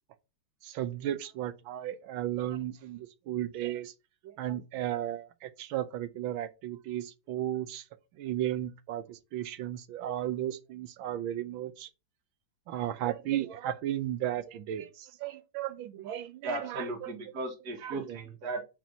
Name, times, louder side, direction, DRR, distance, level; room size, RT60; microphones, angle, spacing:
voice 1, 0.6-3.9 4.2-7.8 8.2-11.9 12.7-17.1 17.8-18.2, right 12 dB, 75° right, 1.5 m, -35 dB
voice 2, 16.4-18.6, right 2 dB, 50° right, 2.2 m, -36 dB
5.3 x 5.1 x 5.4 m
omnidirectional pair, 2.3 m